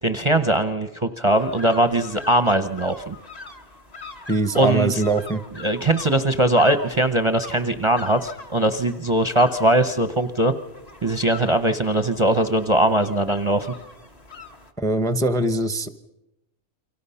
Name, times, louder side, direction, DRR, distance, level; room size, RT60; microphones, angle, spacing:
voice 1, 0.0-3.1 4.5-5.0 5.6-10.5 11.0-13.7, right 1 dB, 25° right, 9 dB, 0.8 m, -20 dB
sound 1, 1.3-14.7, left 3 dB, 30° left, 1.5 m, -42 dB
voice 2, 4.3-5.4 14.8-15.9, right 2 dB, 5° left, 11 dB, 0.8 m, -22 dB
29.5 x 24.5 x 5.7 m, 0.91 s
omnidirectional pair, 1.3 m